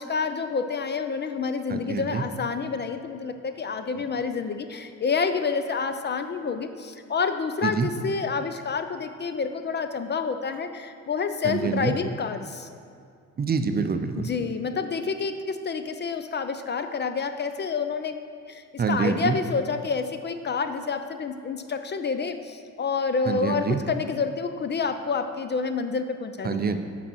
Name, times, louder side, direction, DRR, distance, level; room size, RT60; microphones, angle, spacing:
voice 1, 0.0-12.7 14.2-18.1 18.4-26.6, left 5 dB, 35° left, 8 dB, 0.5 m, -28 dB
voice 2, 1.7-2.2 7.6-7.9 11.4-11.9 13.4-14.3 18.8-19.4 23.3-23.8 26.4-26.8, right 5 dB, 30° right, 8 dB, 0.6 m, -26 dB
10.0 x 4.1 x 6.1 m, 2.2 s
cardioid pair, 90°, 30 cm